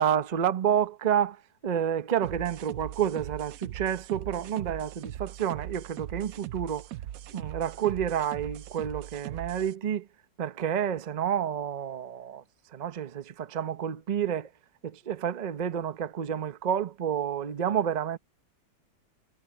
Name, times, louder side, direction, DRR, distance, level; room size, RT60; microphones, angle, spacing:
voice 1, 0.0-6.9 7.3-10.1 10.4-12.4 12.7-14.5 14.8-18.2, right 9 dB, 70° right, 0.4 m, -29 dB
sound 1, 2.2-9.7, right 13 dB, 90° right, 0.7 m, -40 dB
omnidirectional pair, 2.1 m